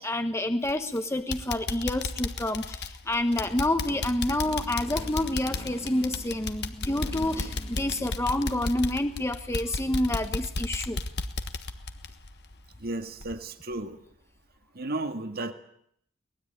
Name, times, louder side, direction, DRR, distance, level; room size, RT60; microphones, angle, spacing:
voice 1, 0.0-11.0, left 1 dB, 15° left, 7 dB, 1.1 m, -28 dB
sound 1, 0.6-1.0 1.3-12.9 13.2-13.3 13.8-13.9, left 3 dB, 55° left, 1.4 m, -34 dB
Motorcycle, 3.4-8.5, left 1 dB, 30° left, 1.5 m, -44 dB
voice 2, 12.8-14.0 14.7-15.5, right 2 dB, 50° right, 7 dB, 1.9 m, -33 dB
23.5 x 19.5 x 9.2 m, 0.71 s
head